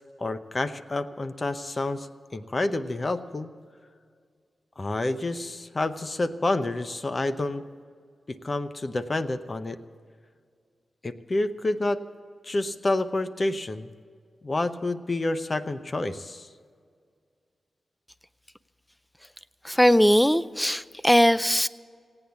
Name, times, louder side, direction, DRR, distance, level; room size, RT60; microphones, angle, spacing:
voice 1, 0.2-2.1 2.3-3.5 4.8-7.6 8.3-9.8 11.0-12.0 12.4-13.9 14.4-16.5, left 2 dB, 45° left, 10 dB, 0.8 m, -28 dB
voice 2, 19.6-21.7, equal, 5° left, 17 dB, 0.5 m, -20 dB
17.0 x 8.8 x 8.2 m, 2.1 s
cardioid pair, 50°, 0 cm